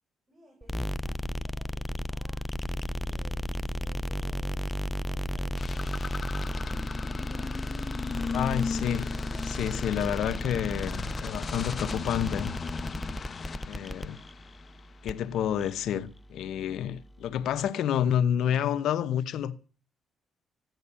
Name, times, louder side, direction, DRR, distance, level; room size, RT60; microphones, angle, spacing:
voice 1, 0.3-2.5 2.8-7.5, right 2 dB, 35° right, 7.6 m, -59 dB
sound 1, 0.6-17.7, left 1 dB, 15° left, 0.7 m, -35 dB
sound 2, 5.6-15.1, left 5 dB, 40° left, 1.1 m, -37 dB
voice 2, 8.3-9.2 9.4-12.5 13.7-14.2 15.0-19.5, left 9 dB, 80° left, 0.9 m, -29 dB
15.0 x 10.5 x 6.9 m
cardioid pair, 90°, 0 cm